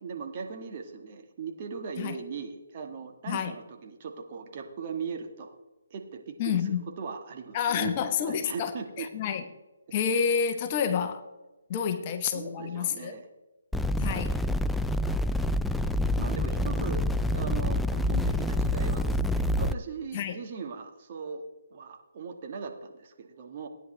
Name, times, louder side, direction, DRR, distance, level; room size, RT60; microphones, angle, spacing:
voice 1, 0.0-5.6 5.9-7.9 8.2-9.1 12.3-13.3 16.2-21.4 21.7-23.7, right 5 dB, 40° right, 1.6 m, -39 dB
voice 2, 6.4-6.8 7.5-8.7 9.0-9.4 9.9-11.2 11.7-13.2 14.0-14.4 20.1-20.4, left 7 dB, 30° left, 1.0 m, -29 dB
sound 1, 13.7-19.7, left 1 dB, 5° left, 0.3 m, -27 dB
16.5 x 9.9 x 3.3 m
figure-of-eight pair, 145°, 0 cm